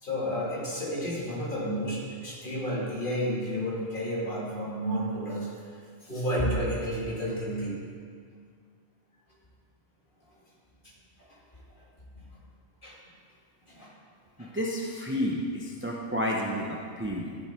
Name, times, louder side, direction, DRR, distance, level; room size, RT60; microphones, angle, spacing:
voice 1, 0.0-7.8 10.3-10.4 10.8-10.9 11.2-11.4 11.8-11.9 12.2-12.3 12.8-13.0 13.7-13.9 14.4-14.5, equal, 40° left, -5 dB, 2.4 m, -31 dB
voice 2, 14.4-17.4, equal, 10° right, -2 dB, 0.7 m, -31 dB
13.0 x 7.3 x 4.5 m, 2.1 s
omnidirectional pair, 1.3 m